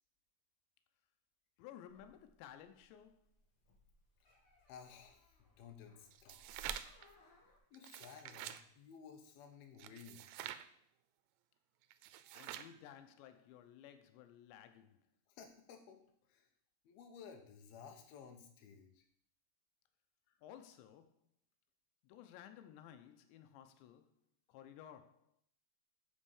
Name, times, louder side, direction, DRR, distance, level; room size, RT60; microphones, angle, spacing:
voice 1, 1.6-3.2 12.3-15.1 20.4-21.2 22.0-24.1 24.5-25.3, left 10 dB, 90° left, 3.0 m, -56 dB
sound 1, 1.9-7.6, right 1 dB, 45° left, 2.0 m, -60 dB
voice 2, 4.7-6.5 7.7-10.3 15.3-16.5 16.8-19.0 20.3-20.4, left 6 dB, 70° left, 2.9 m, -56 dB
sound 2, 6.1-7.1 7.7-8.6 9.8-10.7 11.9-12.8, right 12 dB, 85° right, 2.8 m, -47 dB
8.6 x 5.4 x 7.1 m
omnidirectional pair, 5.0 m